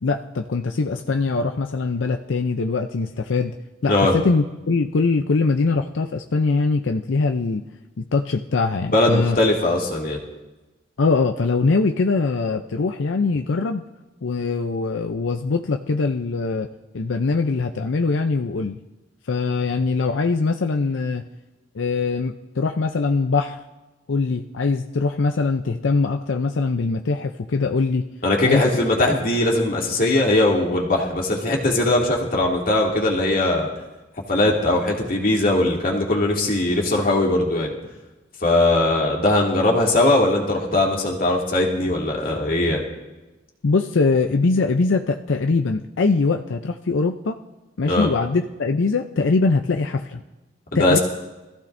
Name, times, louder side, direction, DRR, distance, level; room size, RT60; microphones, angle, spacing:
voice 1, 0.0-3.6 3.8-7.6 8.0-9.4 11.0-13.8 14.2-16.7 16.9-18.8 19.3-21.2 21.7-23.6 24.1-28.0 28.4-28.6 43.6-47.4 47.8-50.2 50.7-51.0, left 4 dB, 85° left, 5 dB, 0.6 m, -22 dB
voice 2, 8.9-10.2 28.2-33.7 34.3-37.7 38.4-42.8 47.9-48.1 50.7-51.0, left 2 dB, 50° left, -1 dB, 2.4 m, -20 dB
24.5 x 14.5 x 2.6 m, 1.1 s
head